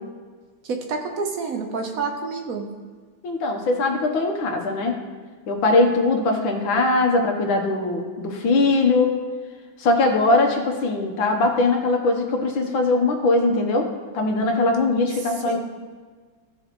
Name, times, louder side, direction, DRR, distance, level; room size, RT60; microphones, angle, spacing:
voice 1, 0.6-2.7 15.2-15.6, right 4 dB, 55° right, 3 dB, 1.1 m, -28 dB
voice 2, 3.2-5.0 5.5-9.2 9.8-13.9 14.1-15.6, left 2 dB, 75° left, 3 dB, 1.8 m, -21 dB
16.0 x 6.7 x 3.1 m, 1.5 s
omnidirectional pair, 2.2 m